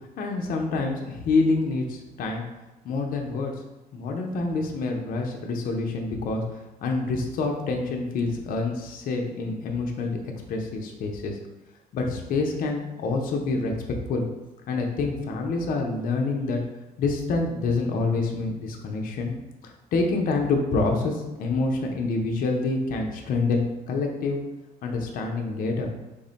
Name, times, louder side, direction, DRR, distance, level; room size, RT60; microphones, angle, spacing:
voice 1, 0.2-2.4 2.8-3.5 3.9-6.4 6.8-10.2 10.5-11.4 11.9-13.7 14.1-14.3 14.7-16.6 17.0-19.3 19.6-24.4 24.8-25.9, left 3 dB, 55° left, 2 dB, 0.5 m, -27 dB
3.4 x 2.1 x 3.9 m, 1.0 s
cardioid pair, 110°, 17 cm